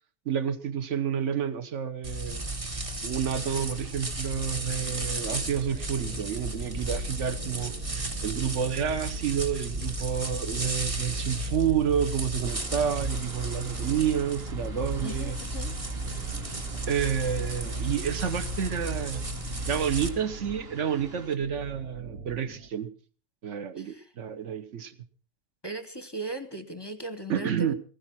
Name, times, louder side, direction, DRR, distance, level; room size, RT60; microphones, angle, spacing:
voice 1, 0.3-2.4 3.0-15.4 16.9-19.2 19.7-22.9 23.4-24.9 27.3-27.7, right 8 dB, 55° right, 1.2 m, -29 dB
sound 1, 2.0-20.1, right 1 dB, 25° right, 1.2 m, -34 dB
sound 2, 4.3-22.7, right 4 dB, 75° right, 1.5 m, -44 dB
sound 3, 12.5-21.4, right 1 dB, 40° right, 1.9 m, -47 dB
voice 2, 15.0-15.7 23.8-24.1 25.6-27.7, right 2 dB, 20° left, 0.8 m, -37 dB
16.0 x 15.5 x 4.3 m
omnidirectional pair, 1.7 m